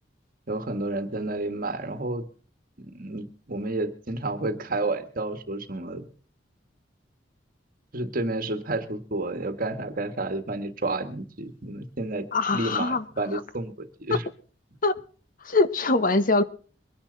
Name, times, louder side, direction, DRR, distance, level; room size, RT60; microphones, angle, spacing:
voice 1, 0.5-2.3 2.9-6.0 7.9-14.2, right 2 dB, 50° right, 9 dB, 1.7 m, -30 dB
voice 2, 12.3-13.0 14.8-14.9 15.4-16.4, left 3 dB, 50° left, 12 dB, 1.0 m, -22 dB
23.5 x 10.5 x 4.0 m, 0.40 s
head